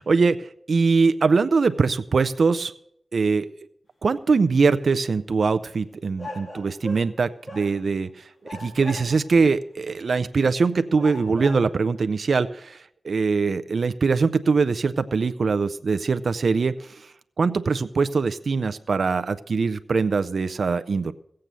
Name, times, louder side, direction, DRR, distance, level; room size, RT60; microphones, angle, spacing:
voice 1, 0.1-2.7 3.1-3.5 4.0-17.1 17.4-21.1, right 4 dB, 70° right, 11 dB, 0.5 m, -22 dB
sound 1, 6.2-7.2 7.5-8.1 8.4-9.4 10.2-10.3 11.0-11.8, left 1 dB, 30° left, 2.9 m, -39 dB
16.5 x 7.7 x 6.8 m, 0.71 s
wide cardioid pair, 70°, 0 cm